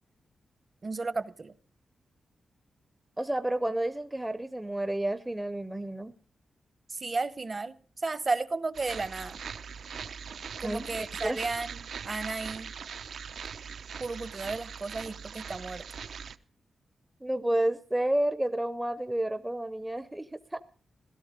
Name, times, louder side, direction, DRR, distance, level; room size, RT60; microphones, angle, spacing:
voice 1, 0.8-1.5 6.9-9.4 10.6-12.7 14.0-15.8, right 3 dB, 30° right, 0.8 m, -33 dB
voice 2, 3.2-6.1 10.6-11.4 17.2-20.6, right 1 dB, 10° right, 0.6 m, -30 dB
sound 1, 8.7-16.4, right 6 dB, 70° right, 0.7 m, -41 dB
17.0 x 13.0 x 5.1 m
wide cardioid pair, 145°, 0 cm